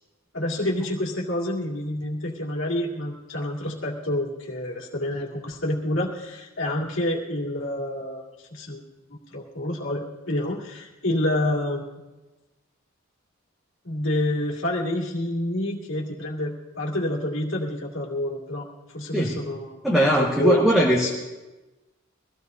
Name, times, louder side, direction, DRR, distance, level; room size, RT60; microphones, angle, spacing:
voice 1, 0.3-8.2 8.5-8.8 9.3-11.8 13.8-20.8, left 1 dB, 65° left, -2 dB, 2.2 m, -28 dB
voice 2, 19.8-21.1, right 1 dB, ahead, -4 dB, 1.4 m, -20 dB
23.0 x 16.0 x 2.7 m, 1.1 s
head